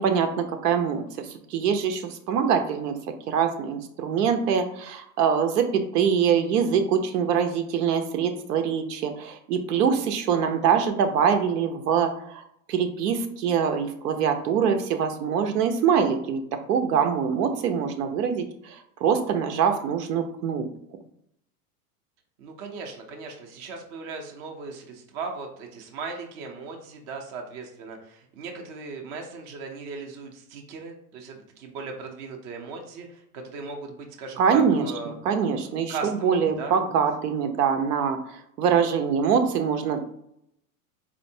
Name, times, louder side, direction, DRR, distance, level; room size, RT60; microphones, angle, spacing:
voice 1, 0.0-3.0 3.3-16.4 16.7-20.7 34.4-40.0, right 7 dB, 85° right, 6 dB, 0.7 m, -24 dB
voice 2, 22.4-35.1 35.6-36.8, right 4 dB, 30° right, 2 dB, 0.5 m, -38 dB
4.4 x 2.5 x 2.7 m, 0.74 s
supercardioid pair, 150°, 46 cm